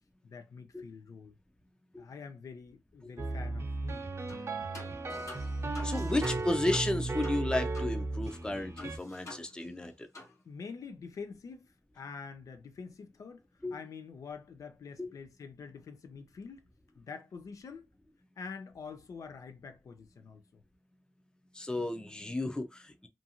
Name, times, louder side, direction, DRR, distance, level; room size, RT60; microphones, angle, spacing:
voice 1, 0.2-1.4 2.0-4.1 10.4-16.7 17.0-17.9 18.4-20.6, left 5 dB, 85° left, 0.4 m, -46 dB
sound 1, 3.2-9.0, right 2 dB, 50° right, 0.6 m, -35 dB
sound 2, 4.3-4.5 4.7-7.9 8.2-8.3 8.8-9.9 10.1-10.3, left 2 dB, 65° left, 1.1 m, -48 dB
voice 2, 5.8-10.1 13.6-13.8 15.0-15.1 21.5-23.1, left 1 dB, 15° left, 0.5 m, -33 dB
2.5 x 2.4 x 2.7 m
wide cardioid pair, 95°, 6 cm